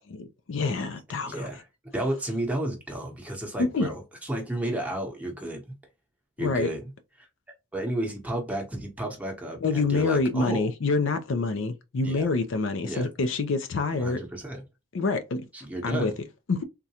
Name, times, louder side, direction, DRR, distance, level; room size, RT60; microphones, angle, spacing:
voice 1, 0.2-1.5 3.6-3.9 6.4-6.7 9.6-14.2 14.9-15.5 15.8-16.1 16.5-16.6, left 3 dB, 60° left, 0.4 m, -26 dB
voice 2, 1.3-1.6 1.9-5.6 6.4-6.9 7.2-7.3 7.7-10.7 12.0-12.3 12.8-13.1 13.9-14.6 15.5-16.1, right 1 dB, 5° right, 0.8 m, -32 dB
3.7 x 2.2 x 2.8 m
head